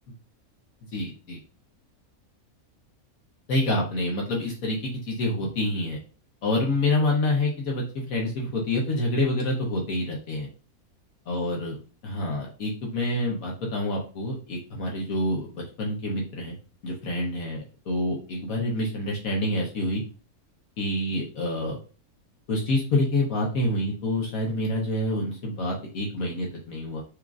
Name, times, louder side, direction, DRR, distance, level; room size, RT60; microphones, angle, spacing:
voice 1, 0.9-1.4 3.5-6.0 6.4-10.5 11.3-11.8 12.0-16.6 16.8-20.0 20.8-21.8 22.5-27.0, left 1 dB, 75° left, -2 dB, 1.3 m, -27 dB
6.1 x 2.5 x 2.4 m, 0.36 s
omnidirectional pair, 1.5 m